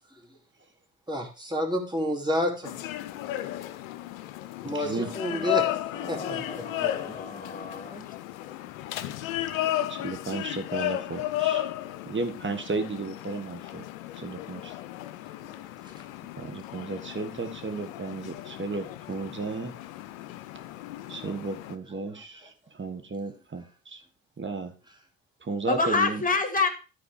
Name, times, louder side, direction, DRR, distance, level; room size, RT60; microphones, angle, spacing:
voice 1, 1.1-2.8 4.6-5.7 6.1-7.7 15.8-15.9, equal, 10° right, 2 dB, 2.7 m, -30 dB
sound 1, 2.6-21.8, left 14 dB, 80° left, 0.6 m, -34 dB
voice 2, 4.6-5.1 9.9-11.6 12.1-13.9 14.1-14.7 16.4-19.7 21.1-24.0 24.4-24.7 25.4-26.2, right 3 dB, 30° right, 7 dB, 1.7 m, -34 dB
voice 3, 5.3-5.7 6.0-8.0 25.7-26.7, left 4 dB, 20° left, 7 dB, 2.1 m, -29 dB
12.5 x 4.4 x 4.9 m, 0.34 s
figure-of-eight pair, 45°, 40 cm